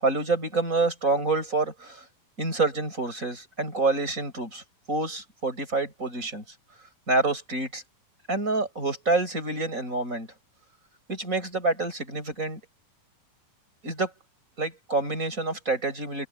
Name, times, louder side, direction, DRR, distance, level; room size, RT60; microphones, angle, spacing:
voice 1, 0.0-2.0 2.4-4.6 4.9-6.4 7.1-7.8 8.3-10.3 11.1-12.6 13.8-14.1 14.6-16.3, right 3 dB, 20° right, 7.2 m, -27 dB
omnidirectional pair, 4.0 m